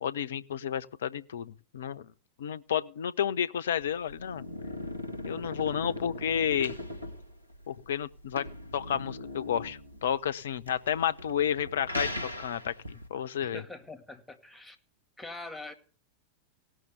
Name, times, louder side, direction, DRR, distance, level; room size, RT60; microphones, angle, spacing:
voice 1, 0.0-2.1 2.4-4.4 5.2-6.7 7.7-8.4 8.7-13.6, left 9 dB, 60° left, 0.6 m, -31 dB
sound 1, 3.8-13.1, left 1 dB, 85° right, 1.8 m, -40 dB
voice 2, 13.4-14.8 15.2-15.7, left 2 dB, 5° left, 2.1 m, -43 dB
17.5 x 6.3 x 7.9 m
figure-of-eight pair, 90°, 0 cm